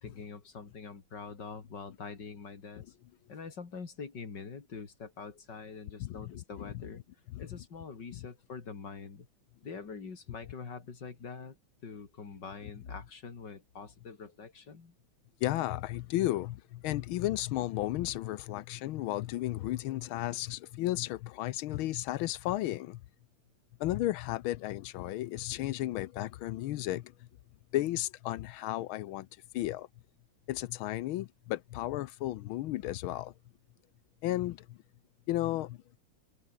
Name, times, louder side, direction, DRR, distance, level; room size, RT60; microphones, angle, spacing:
voice 1, 0.0-2.9 3.3-7.0 7.4-9.3 9.6-11.6 11.8-14.9, left 5 dB, 50° left, 3.3 m, -44 dB
voice 2, 6.0-6.9 7.3-7.6 15.4-23.0 23.8-27.1 27.7-29.3 29.5-29.9 30.5-33.3 34.2-34.8 35.3-35.8, left 15 dB, 75° left, 1.4 m, -34 dB
omnidirectional pair, 2.4 m